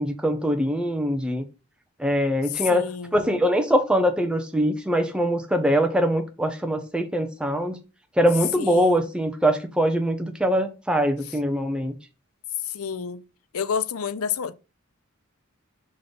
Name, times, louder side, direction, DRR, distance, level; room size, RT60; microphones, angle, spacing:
voice 1, 0.0-1.4 2.0-2.9 3.1-7.8 8.2-12.0, equal, 5° right, 0.7 m, -23 dB
voice 2, 2.5-3.2 8.6-9.0 11.3-11.4 12.6-13.2 13.5-14.5, left 7 dB, 80° left, 0.5 m, -29 dB
5.3 x 3.9 x 5.3 m
head